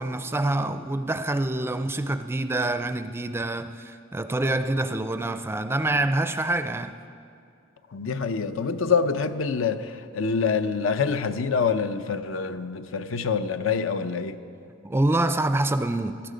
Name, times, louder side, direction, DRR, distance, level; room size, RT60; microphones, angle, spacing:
voice 1, 0.0-7.0 14.8-16.2, right 2 dB, 10° right, 0.4 m, -26 dB
voice 2, 7.9-14.4, left 5 dB, 75° left, 0.6 m, -26 dB
18.0 x 13.0 x 5.1 m
head